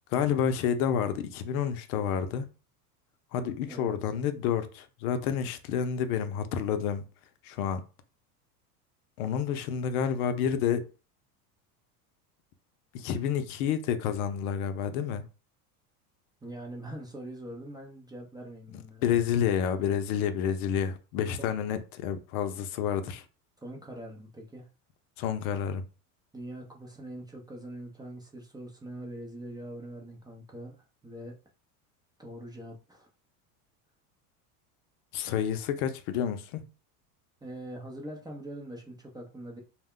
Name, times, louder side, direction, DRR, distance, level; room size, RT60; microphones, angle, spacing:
voice 1, 0.1-2.4 3.3-7.1 7.4-7.8 9.2-10.9 12.9-15.2 19.0-23.2 25.2-25.8 35.1-36.6, left 8 dB, 70° left, 0.6 m, -29 dB
voice 2, 3.7-4.0 16.4-19.0 23.6-24.7 26.3-30.8 31.0-31.4 32.2-33.1 37.4-39.6, right 1 dB, 10° right, 0.5 m, -43 dB
2.2 x 2.1 x 3.6 m
hypercardioid pair, 100°, 46 cm